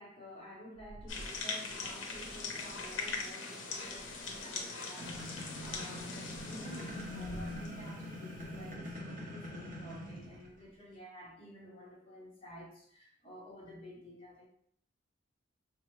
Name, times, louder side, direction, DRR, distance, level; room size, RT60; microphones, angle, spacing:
voice 1, 0.0-14.5, equal, 30° left, -3 dB, 0.9 m, -51 dB
sound 1, 0.8-3.3 3.7-4.6 5.1-9.1, right 1 dB, 75° right, 0.4 m, -53 dB
sound 2, 1.1-7.9, left 4 dB, 70° left, 0.6 m, -41 dB
sound 3, 5.0-10.6, left 1 dB, 45° right, 0.8 m, -43 dB
3.3 x 2.0 x 3.1 m, 0.64 s
head